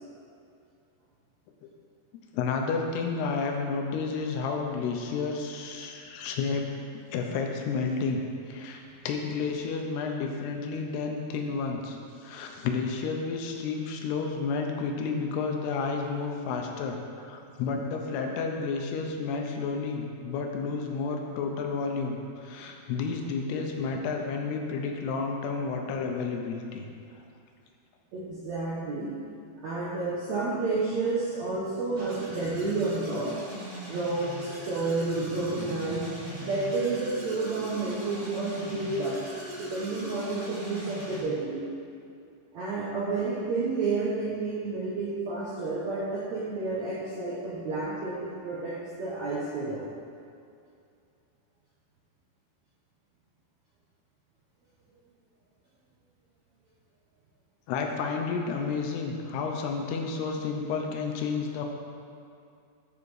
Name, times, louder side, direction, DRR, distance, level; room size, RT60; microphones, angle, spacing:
voice 1, 2.3-6.7 7.1-8.2 8.5-17.0 17.2-26.8 57.7-61.7, left 4 dB, 80° left, 2 dB, 2.9 m, -31 dB
voice 2, 28.1-29.1 29.6-33.3 33.9-39.2 39.6-41.6 42.5-49.8, right 3 dB, 70° right, -8 dB, 1.7 m, -30 dB
sound 1, 32.0-41.2, equal, 35° right, 2.2 m, -40 dB
11.5 x 5.4 x 4.8 m, 2.5 s
omnidirectional pair, 4.7 m